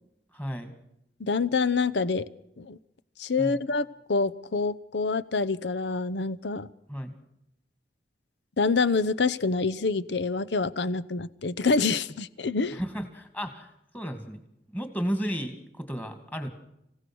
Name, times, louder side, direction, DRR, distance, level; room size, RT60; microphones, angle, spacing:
voice 1, 0.3-0.7 3.4-3.6 6.9-7.1 12.7-14.4 14.7-16.5, equal, 10° left, 8 dB, 2.4 m, -33 dB
voice 2, 1.2-2.2 2.6-2.8 3.2-6.7 8.6-12.8, left 4 dB, 90° left, 16 dB, 0.8 m, -26 dB
27.0 x 16.5 x 6.3 m, 0.80 s
head